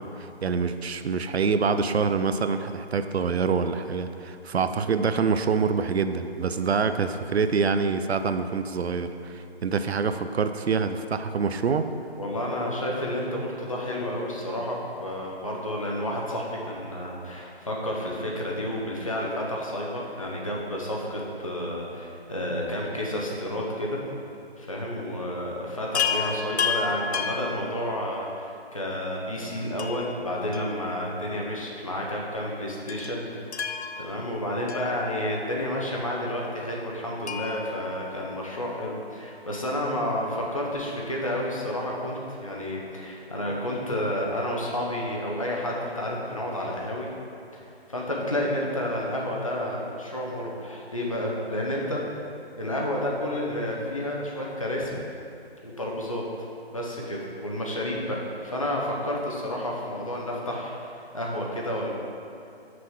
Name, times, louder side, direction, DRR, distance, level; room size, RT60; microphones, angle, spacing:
voice 1, 0.0-11.9, right 5 dB, 75° right, 9 dB, 0.5 m, -26 dB
voice 2, 12.2-24.0 24.6-47.1 47.5-47.6 47.9-52.0 52.6-55.0 55.6-56.2 56.7-61.9, left 1 dB, 30° left, -3 dB, 0.8 m, -30 dB
Chime, 25.9-28.4 29.8-31.3 31.6-31.7 32.9-35.6 37.2-38.9 40.4-40.5 40.7-40.8, left 6 dB, 80° left, 0.7 m, -32 dB
6.2 x 5.7 x 4.7 m, 2.7 s
figure-of-eight pair, 175°, 32 cm